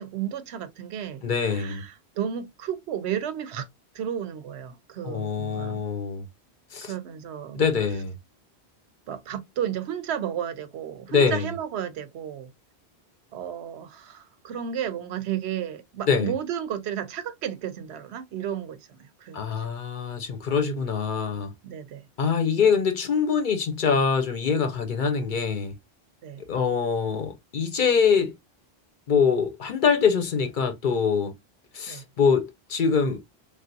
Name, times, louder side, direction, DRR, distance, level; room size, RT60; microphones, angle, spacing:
voice 1, 0.0-3.7 3.9-5.8 6.9-7.6 9.1-12.5 13.3-19.7 21.6-22.0 26.2-26.4 31.9-32.0, right 9 dB, 80° right, 0.8 m, -33 dB
voice 2, 1.2-1.8 5.0-6.3 6.7-6.9 7.5-8.1 11.1-11.5 16.1-16.3 19.3-21.5 22.2-25.7 26.5-28.4 29.1-31.3 31.7-33.2, left 6 dB, 55° left, 0.7 m, -24 dB
3.3 x 2.4 x 2.5 m
omnidirectional pair, 1.1 m